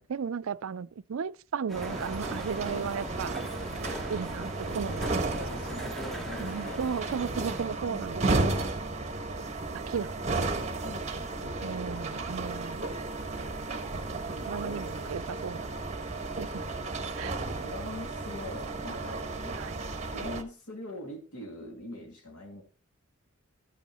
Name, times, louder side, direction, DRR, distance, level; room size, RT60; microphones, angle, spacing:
voice 1, 0.1-3.4 4.1-5.4 6.4-8.6 9.9-10.7 11.6-12.8 13.7-13.8 14.1-15.7 16.4-16.6 17.1-17.4 19.6-19.8, right 6 dB, 70° right, 0.4 m, -35 dB
sound 1, 1.7-7.7, equal, ahead, 1.0 m, -42 dB
sound 2, 1.7-20.4, right 3 dB, 30° right, 1.2 m, -34 dB
voice 2, 3.6-3.9 4.7-4.8 5.2-6.8 7.9-8.3 10.8-11.8 14.6-14.9 17.6-19.6 20.0-22.6, left 1 dB, 85° left, 2.3 m, -43 dB
13.0 x 8.4 x 3.0 m
head